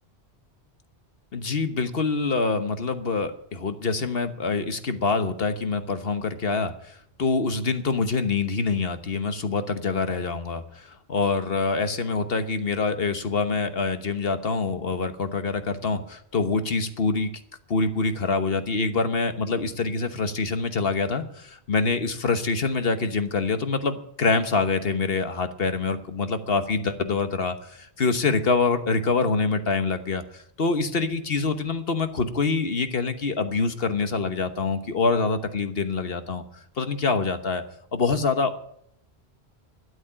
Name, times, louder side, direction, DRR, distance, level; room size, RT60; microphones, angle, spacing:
voice 1, 1.3-17.3 17.7-36.4 36.8-37.6 37.9-38.6, left 4 dB, 65° left, 9 dB, 1.4 m, -25 dB
12.5 x 9.6 x 8.8 m, 0.70 s
omnidirectional pair, 1.1 m